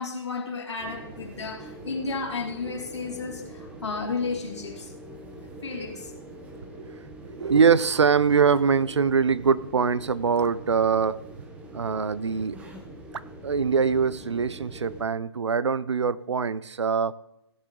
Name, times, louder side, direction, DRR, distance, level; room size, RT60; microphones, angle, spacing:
voice 1, 0.0-4.9 5.6-6.1, left 4 dB, 80° left, 1 dB, 2.9 m, -33 dB
sound 1, 0.8-15.0, right 1 dB, 10° right, 0.9 m, -44 dB
voice 2, 7.2-11.2 11.7-12.6 13.1-17.1, right 6 dB, 90° right, 19 dB, 0.6 m, -23 dB
16.5 x 7.2 x 3.8 m, 0.84 s
hypercardioid pair, 155°, 14 cm